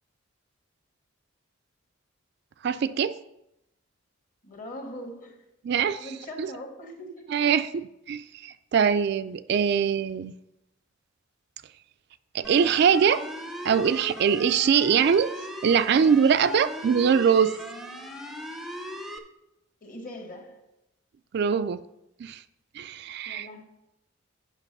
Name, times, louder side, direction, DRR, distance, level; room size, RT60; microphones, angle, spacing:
voice 1, 2.6-3.2 5.6-6.1 6.4-6.5 7.3-7.8 8.1-10.3 12.3-13.3 13.6-15.3 15.6-17.5 21.3-21.8 22.2-22.4 22.7-23.5, right 7 dB, 55° right, 12 dB, 0.3 m, -22 dB
voice 2, 4.4-5.4 6.0-7.3 19.8-20.7 23.2-23.6, left 1 dB, 40° left, 3 dB, 1.5 m, -41 dB
sound 1, 12.4-19.2, equal, ahead, 0.5 m, -38 dB
8.3 x 5.9 x 5.3 m, 0.85 s
head